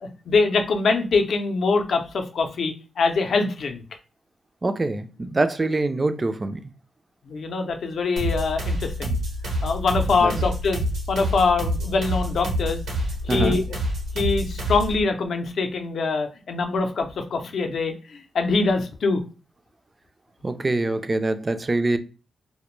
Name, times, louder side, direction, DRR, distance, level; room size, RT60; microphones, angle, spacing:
voice 1, 0.0-3.8 7.3-9.2 9.6-10.8 11.1-12.8 13.2-13.6 14.1-19.2, left 4 dB, 70° left, 0.5 m, -24 dB
voice 2, 4.6-6.6 10.2-10.3 13.3-13.6 20.4-22.0, right 2 dB, 30° right, 0.3 m, -24 dB
sound 1, 8.2-15.0, equal, 85° right, 0.8 m, -27 dB
2.1 x 2.1 x 3.0 m
cardioid pair, 75°, 0 cm